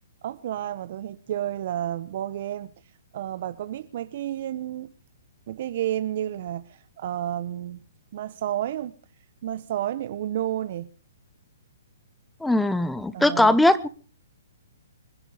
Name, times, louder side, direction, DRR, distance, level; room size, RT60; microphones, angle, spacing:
voice 1, 0.2-2.7 3.1-4.9 5.5-7.8 8.1-8.9 9.4-10.9 13.1-13.6, right 12 dB, 55° right, 0.9 m, -31 dB
voice 2, 12.4-13.9, left 1 dB, 5° left, 1.0 m, -20 dB
26.0 x 11.0 x 5.0 m
hypercardioid pair, 135°, 0 cm